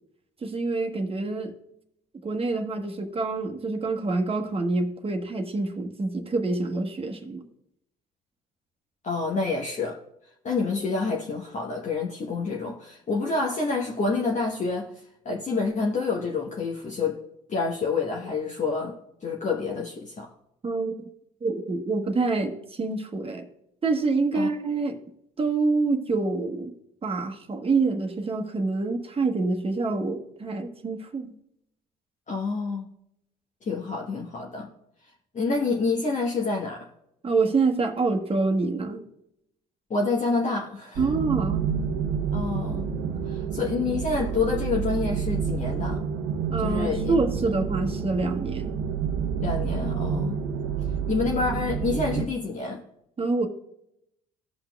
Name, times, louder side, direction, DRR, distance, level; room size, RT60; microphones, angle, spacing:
voice 1, 0.4-1.5 2.2-7.4 20.6-21.0 21.4-23.5 23.8-25.0 25.4-26.7 27.0-31.3 37.2-39.1 41.0-41.7 46.5-48.8 53.2-53.5, right 3 dB, 30° right, 3 dB, 1.2 m, -26 dB
voice 2, 9.0-10.0 10.4-14.9 15.2-17.2 17.5-19.0 19.2-20.3 24.3-24.5 32.3-32.8 33.6-34.7 35.3-36.9 39.9-41.1 42.3-42.9 43.2-46.0 46.6-47.2 47.6-47.7 49.4-50.4 51.1-52.8, left 4 dB, 35° left, -1 dB, 1.1 m, -28 dB
sound 1, 41.0-52.3, right 7 dB, 65° right, 0.8 m, -29 dB
16.5 x 5.7 x 2.3 m, 0.79 s
hypercardioid pair, 60°, 20 cm